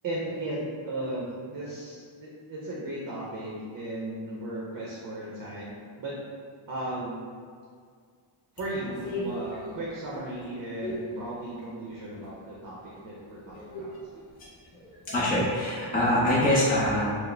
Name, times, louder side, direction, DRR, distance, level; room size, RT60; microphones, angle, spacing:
voice 1, 0.0-6.2 6.7-7.1 8.5-14.0, right 1 dB, 45° right, -5 dB, 0.6 m, -36 dB
voice 2, 13.5-13.8 14.4-14.5 14.9-17.0, left 1 dB, 20° left, -7 dB, 0.5 m, -25 dB
4.6 x 2.0 x 3.2 m, 2.1 s
wide cardioid pair, 155°, 47 cm